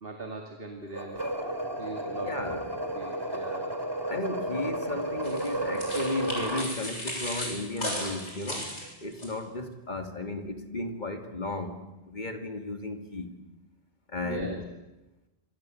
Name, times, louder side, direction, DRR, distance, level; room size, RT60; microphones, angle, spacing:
voice 1, 0.0-1.3 1.8-2.5 2.9-3.7 14.2-14.6, right 3 dB, 55° right, 3 dB, 2.5 m, -40 dB
sound 1, 0.9-6.7, right 1 dB, 20° right, 2.8 m, -33 dB
voice 2, 2.2-2.7 4.1-8.7 9.0-11.8 12.1-13.3 14.1-14.6, left 2 dB, 40° left, 6 dB, 2.8 m, -34 dB
sound 2, 5.2-9.3, left 1 dB, 80° left, 7.5 m, -36 dB
27.0 x 25.0 x 7.9 m, 1.0 s
omnidirectional pair, 1.2 m